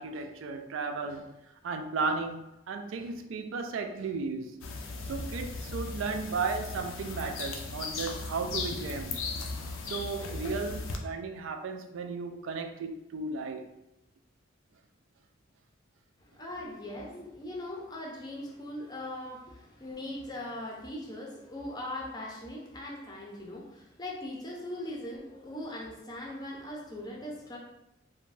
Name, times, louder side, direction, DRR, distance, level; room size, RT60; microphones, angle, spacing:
voice 1, 0.0-1.3 1.6-4.6 5.0-9.2 9.8-13.7, right 4 dB, 75° right, 0.3 m, -35 dB
sound 1, 4.6-11.0, left 3 dB, 80° left, 0.4 m, -37 dB
voice 2, 16.2-27.6, left 1 dB, 20° left, 0.5 m, -40 dB
2.5 x 2.2 x 3.2 m
head